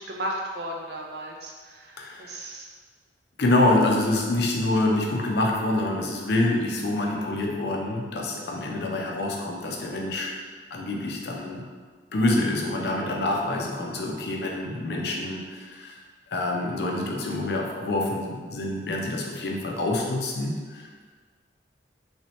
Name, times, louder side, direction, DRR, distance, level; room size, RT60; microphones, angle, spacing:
voice 1, 0.0-2.7, right 1 dB, 60° right, -1 dB, 0.5 m, -35 dB
voice 2, 2.0-2.4 3.4-10.3 10.7-11.6 12.1-16.0 16.3-20.9, left 2 dB, 65° left, -1 dB, 0.5 m, -26 dB
3.2 x 2.9 x 3.1 m, 1.5 s
head